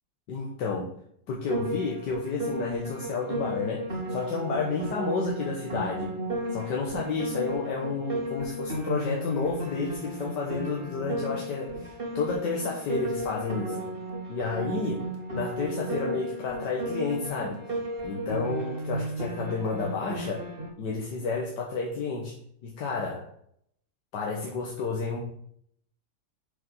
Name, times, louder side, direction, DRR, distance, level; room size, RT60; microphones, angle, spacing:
voice 1, 0.3-0.9 1.3-6.2 6.5-11.9 12.2-13.9 14.3-17.6 18.0-20.4 20.8-22.3 22.6-23.3 24.1-25.2, left 4 dB, 90° left, -1 dB, 1.8 m, -31 dB
Piano, 1.5-20.7, right 1 dB, 35° right, 2.0 m, -34 dB
6.7 x 5.5 x 5.4 m, 0.68 s
omnidirectional pair, 1.8 m